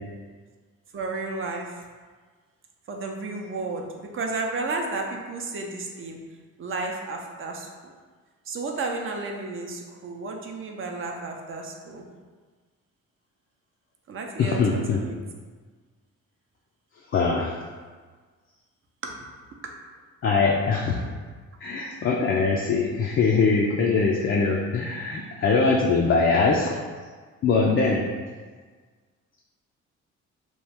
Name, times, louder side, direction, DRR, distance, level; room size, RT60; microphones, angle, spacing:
voice 1, 0.9-1.7 2.9-6.2 6.6-7.9 8.5-12.1 14.1-15.2 19.0-19.2, right 3 dB, 45° right, 2 dB, 0.5 m, -32 dB
voice 2, 14.4-15.0 17.1-17.6 20.2-21.0 21.6-26.8 27.4-28.1, left 4 dB, 45° left, -2 dB, 0.4 m, -22 dB
3.0 x 2.3 x 3.4 m, 1.5 s
cardioid pair, 90°, 30 cm